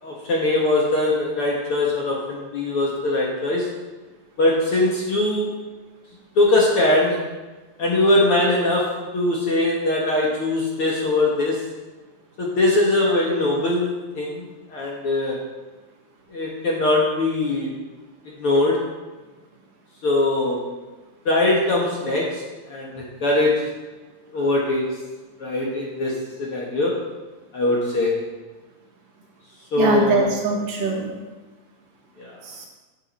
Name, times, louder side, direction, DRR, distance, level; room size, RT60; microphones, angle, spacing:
voice 1, 0.0-3.7 4.4-5.5 6.3-7.2 7.8-8.9 9.1-11.6 12.4-15.4 16.3-17.8 18.4-18.8 20.0-20.7 21.2-23.6 24.3-24.8 25.4-26.9 27.5-28.1 29.7-30.3 32.2-32.4, left 2 dB, 55° left, -3 dB, 1.6 m, -21 dB
voice 2, 29.8-31.1 32.4-32.7, right 4 dB, 65° right, -2 dB, 3.4 m, -23 dB
10.0 x 7.3 x 5.4 m, 1.2 s
omnidirectional pair, 4.2 m